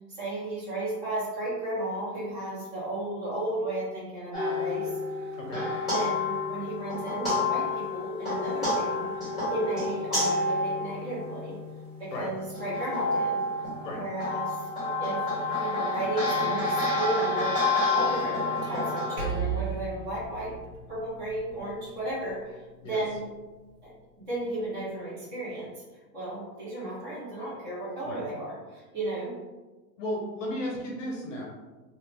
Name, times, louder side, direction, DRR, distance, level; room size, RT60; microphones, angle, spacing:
voice 1, 0.1-4.9 5.2-5.3 5.9-11.6 12.0-13.4 13.9-14.7 15.0-17.6 17.9-20.6 20.9-23.3 23.8-23.9 24.3-25.8 26.1-29.3, right 1 dB, 30° right, -9 dB, 1.4 m, -34 dB
sound 1, 4.3-11.8 12.4-19.2, left 2 dB, ahead, 1.4 m, -29 dB
voice 2, 5.3-5.7 12.1-12.3 13.8-14.0 22.8-23.0 28.0-28.2 30.0-31.4, left 1 dB, 50° left, -2 dB, 0.7 m, -34 dB
Percussion, 19.2-23.9, right 6 dB, 70° right, 1.4 m, -37 dB
2.8 x 2.4 x 3.4 m, 1.2 s
supercardioid pair, 175°, 49 cm